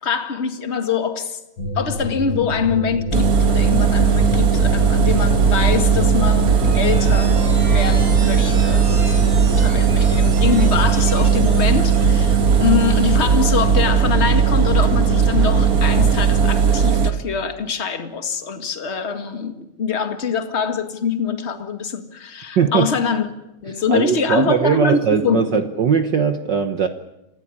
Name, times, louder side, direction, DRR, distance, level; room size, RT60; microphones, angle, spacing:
voice 1, 0.0-1.4 1.7-23.3 23.6-25.6, left 6 dB, 25° left, 8 dB, 1.7 m, -24 dB
sound 1, 1.6-16.5, left 1 dB, 45° left, 4.0 m, -27 dB
Engine, 3.1-17.1, right 7 dB, 40° right, 1.5 m, -17 dB
sound 2, 6.2-12.1, right 2 dB, 80° right, 8.1 m, -36 dB
voice 2, 22.6-22.9 23.9-26.9, right 7 dB, 60° right, 8 dB, 1.2 m, -19 dB
27.0 x 16.5 x 10.0 m, 0.93 s
omnidirectional pair, 3.3 m